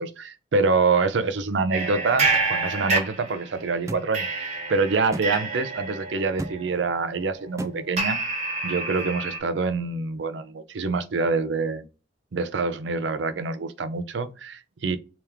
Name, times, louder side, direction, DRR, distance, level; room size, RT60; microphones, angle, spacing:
voice 1, 0.0-8.2 8.6-11.9 12.3-15.0, right 4 dB, 80° right, 0.5 m, -26 dB
sound 1, 1.7-3.7 4.1-9.4, right 3 dB, 40° right, 1.0 m, -28 dB
sound 2, 3.9-4.1 5.1-5.3 6.4-6.6 7.6-7.7, right 1 dB, 15° right, 0.3 m, -32 dB
3.5 x 2.9 x 3.4 m
head